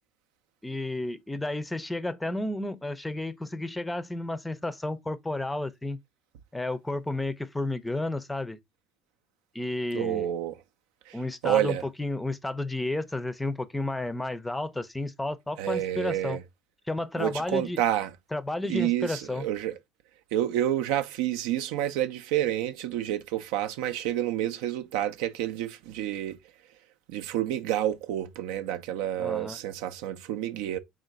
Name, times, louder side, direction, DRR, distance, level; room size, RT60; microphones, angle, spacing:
voice 1, 0.6-6.0 6.5-8.6 9.5-10.3 11.1-16.4 16.9-17.8 18.3-19.4 29.2-29.6, left 2 dB, 10° left, 0.5 m, -32 dB
voice 2, 9.9-10.6 11.1-11.2 11.4-11.8 15.6-16.4 17.2-18.1 18.6-19.8 20.3-26.4 27.1-30.8, right 12 dB, 80° right, 0.4 m, -29 dB
3.7 x 2.5 x 3.9 m
supercardioid pair, 85°, 0 cm